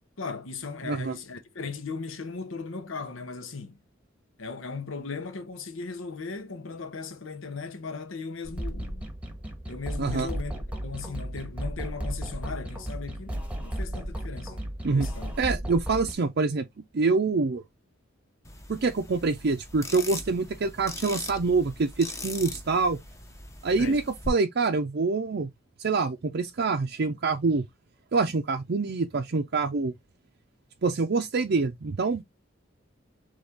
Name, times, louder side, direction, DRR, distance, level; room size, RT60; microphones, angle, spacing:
voice 1, 0.2-3.8 4.4-9.1 9.7-10.5 10.8-15.3 23.8-24.0, left 4 dB, 85° left, 0.9 m, -37 dB
voice 2, 0.8-1.2 10.0-10.3 14.8-15.1 15.4-16.7 16.9-17.6 18.7-23.0 23.6-25.5 25.8-27.6 28.1-29.9 30.8-32.2, right 4 dB, 55° right, 0.5 m, -26 dB
Phone Call from Space, 8.4-16.1, right 1 dB, 5° right, 1.0 m, -34 dB
sound 1, 18.4-24.3, left 2 dB, 15° left, 0.8 m, -40 dB
4.0 x 3.4 x 3.5 m
head